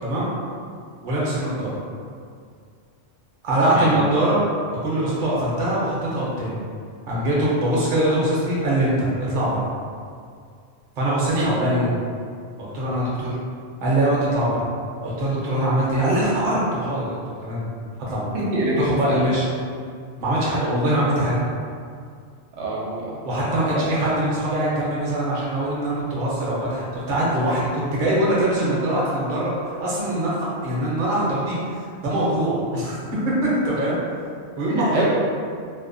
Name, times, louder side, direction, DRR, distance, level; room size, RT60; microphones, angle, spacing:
voice 1, 0.0-0.3 1.0-1.8 3.4-4.4 4.8-6.6 7.1-9.6 11.0-11.9 12.6-13.4 13.8-14.6 15.0-17.6 18.1-18.3 18.8-19.5 20.2-21.4 23.2-33.0 33.2-34.0 34.6-35.0, right 1 dB, 50° right, -6 dB, 0.7 m, -23 dB
voice 2, 18.3-19.2 20.7-20.8 22.6-23.1 23.7-23.8 34.7-35.0, right 2 dB, 80° right, -6 dB, 0.9 m, -25 dB
2.6 x 2.1 x 2.5 m, 2.2 s
omnidirectional pair, 1.1 m